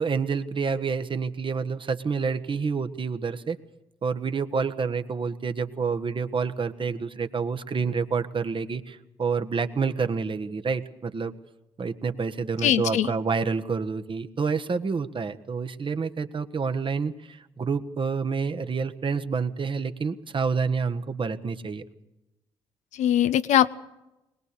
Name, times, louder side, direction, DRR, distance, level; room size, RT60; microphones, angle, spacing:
voice 1, 0.0-3.6 4.0-11.3 11.8-21.8, right 5 dB, 40° right, 8 dB, 1.5 m, -28 dB
voice 2, 12.6-13.1 22.9-23.8, left 11 dB, 65° left, 13 dB, 0.8 m, -21 dB
22.0 x 20.5 x 6.9 m, 0.95 s
hypercardioid pair, 40°, 13 cm